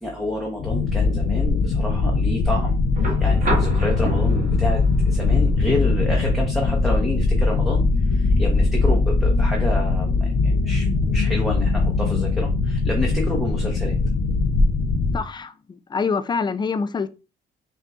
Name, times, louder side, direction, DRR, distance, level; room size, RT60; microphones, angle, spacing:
voice 1, 0.0-14.0, left 1 dB, ahead, 1.0 m, -29 dB
sound 1, 0.6-15.2, left 3 dB, 75° left, 0.6 m, -20 dB
sound 2, 3.0-11.0 12.4-12.5, right 2 dB, 45° right, 1.4 m, -33 dB
voice 2, 15.1-17.1, left 5 dB, 20° left, 0.4 m, -26 dB
5.7 x 2.7 x 2.4 m
cardioid pair, 90°, 20 cm